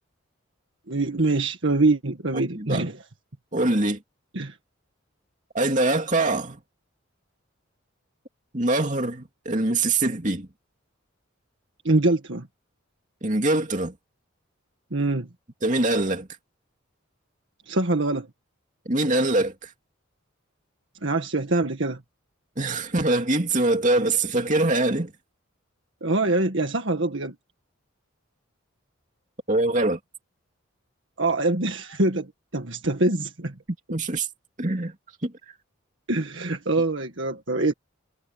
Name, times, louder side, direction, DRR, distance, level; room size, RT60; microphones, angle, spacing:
voice 1, 0.9-2.9 4.3-4.6 11.9-12.5 14.9-15.3 17.7-18.3 21.0-22.0 26.0-27.4 31.2-33.5 36.1-37.7, right 2 dB, 65° right, 1.8 m, -24 dB
voice 2, 2.3-2.9 3.5-4.0 5.5-6.6 8.5-10.5 13.2-13.9 15.6-16.3 18.9-19.7 22.6-25.1 29.5-30.0 33.9-34.3 34.6-34.9 35.2-35.3, right 2 dB, 35° right, 2.7 m, -23 dB
head